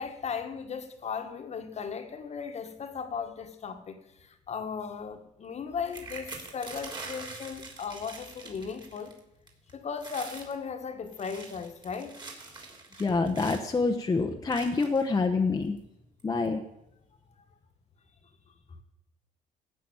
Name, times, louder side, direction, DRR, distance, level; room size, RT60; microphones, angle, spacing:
voice 1, 0.0-9.1 9.7-12.2, left 6 dB, 40° left, 1.6 m, -37 dB
sound 1, 5.9-9.2 9.5-9.7 10.0-10.5 11.1-13.7 14.5-15.1 15.8-15.9 16.2-16.5, right 3 dB, 25° right, 3.3 m, -44 dB
voice 2, 13.0-15.8 16.2-16.6, left 4 dB, 20° left, 1.0 m, -26 dB
16.0 x 6.1 x 8.7 m
cardioid pair, 110°, 17 cm